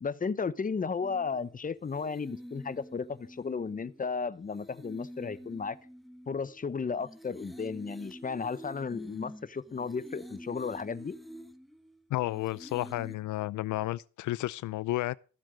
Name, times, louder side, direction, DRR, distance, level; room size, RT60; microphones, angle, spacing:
voice 1, 0.0-5.8 6.3-11.2, left 5 dB, 25° left, 1.0 m, -34 dB
sound 1, 1.0-13.2, equal, ahead, 1.1 m, -48 dB
voice 2, 12.1-15.1, left 16 dB, 75° left, 0.6 m, -32 dB
15.0 x 7.5 x 6.5 m
cardioid pair, 90°, 30 cm